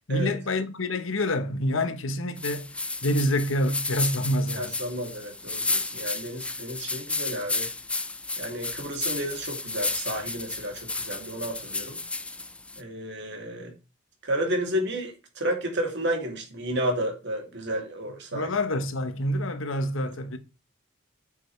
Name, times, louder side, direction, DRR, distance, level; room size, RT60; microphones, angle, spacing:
voice 1, 0.1-2.7 3.0-4.7 18.3-20.4, left 1 dB, 75° left, 1.1 m, -27 dB
sound 1, 2.4-12.8, left 3 dB, 5° left, 0.3 m, -32 dB
voice 2, 4.5-7.7 8.4-12.0 12.8-13.7 14.2-18.5 20.0-20.1, equal, 55° right, 2.8 m, -31 dB
8.3 x 7.0 x 3.3 m
head